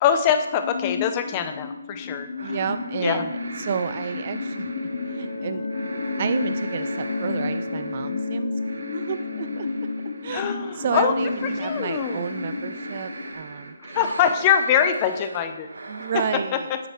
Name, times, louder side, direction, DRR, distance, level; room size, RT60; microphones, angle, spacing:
voice 1, 0.0-2.3 3.0-3.2 10.3-11.1 11.4-12.2 13.8-15.7 16.1-16.2 16.7-16.8, left 8 dB, 25° left, 8 dB, 0.6 m, -23 dB
sound 1, 0.6-13.3, left 4 dB, 55° left, 0.9 m, -33 dB
voice 2, 2.4-4.7 5.1-5.7 6.2-8.5 8.9-9.7 10.2-13.7 15.9-16.7, right 7 dB, 40° right, 11 dB, 0.3 m, -30 dB
sound 2, 2.4-16.4, right 2 dB, 75° right, 1.2 m, -40 dB
sound 3, 4.1-12.7, left 2 dB, 75° left, 1.4 m, -33 dB
8.6 x 7.8 x 3.1 m, 1.0 s
figure-of-eight pair, 150°, 0 cm